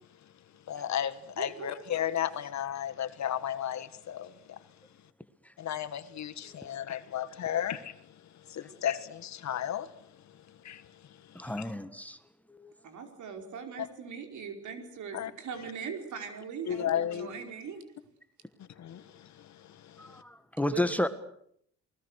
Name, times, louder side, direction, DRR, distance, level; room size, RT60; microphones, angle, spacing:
voice 1, 0.7-4.3 5.6-7.9 8.5-9.9 10.7-10.8 11.6-11.7 15.1-15.3 16.7-17.4 18.8-19.0, left 10 dB, 65° left, 1.8 m, -33 dB
voice 2, 1.4-1.7 12.8-17.8 20.6-20.8, right 6 dB, 70° right, 5.0 m, -40 dB
voice 3, 11.4-12.2 12.5-12.7 20.0-21.1, left 1 dB, 5° left, 1.7 m, -31 dB
29.5 x 20.5 x 6.6 m
cardioid pair, 90°, 30 cm